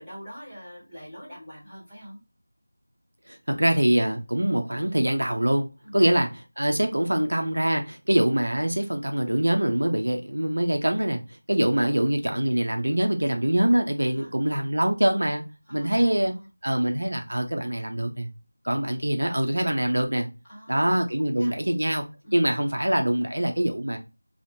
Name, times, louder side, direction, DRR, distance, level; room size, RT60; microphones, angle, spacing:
voice 1, 0.0-2.2 5.8-6.0 11.8-12.0 14.1-14.3 15.7-16.5 20.5-21.7 22.2-22.4, equal, 5° left, -12 dB, 1.7 m, -45 dB
voice 2, 3.3-11.2 11.5-15.4 15.7-16.3 16.6-18.3 18.6-20.3 20.7-22.0 22.3-24.0, right 1 dB, 70° right, 4 dB, 0.7 m, -24 dB
4.2 x 2.4 x 2.7 m, 0.29 s
figure-of-eight pair, 170°, 0 cm